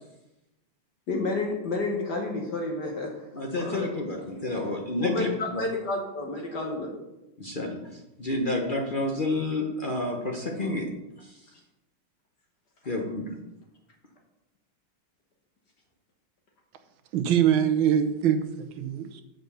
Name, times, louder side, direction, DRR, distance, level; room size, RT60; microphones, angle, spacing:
voice 1, 1.1-3.3 3.6-4.2 5.0-7.0, left 2 dB, 55° left, 1 dB, 1.7 m, -30 dB
voice 2, 3.3-5.6 7.4-10.9 11.2-11.3 12.8-13.3, left 2 dB, 40° left, 0 dB, 0.7 m, -30 dB
voice 3, 17.1-19.2, right 9 dB, 70° right, 8 dB, 1.6 m, -24 dB
7.8 x 5.3 x 6.7 m, 0.94 s
omnidirectional pair, 2.3 m